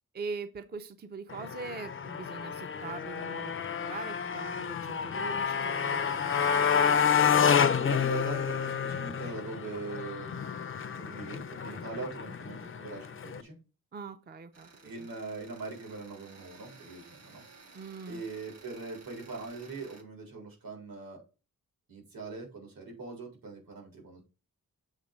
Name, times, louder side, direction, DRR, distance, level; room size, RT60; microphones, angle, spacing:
voice 1, 0.1-7.0 12.3-12.4 13.9-14.7 15.0-15.1 17.7-18.2, right 4 dB, 30° right, 10 dB, 0.5 m, -42 dB
Motorcycle, 1.3-13.4, left 7 dB, 40° left, 0.5 m, -29 dB
voice 2, 7.7-10.4 10.9-13.6 14.8-21.2 21.9-24.2, right 3 dB, 80° right, 0 dB, 3.9 m, -41 dB
sound 1, 14.5-20.0, right 4 dB, 50° right, 1.3 m, -55 dB
7.3 x 3.8 x 5.2 m, 0.31 s
wide cardioid pair, 170°, 34 cm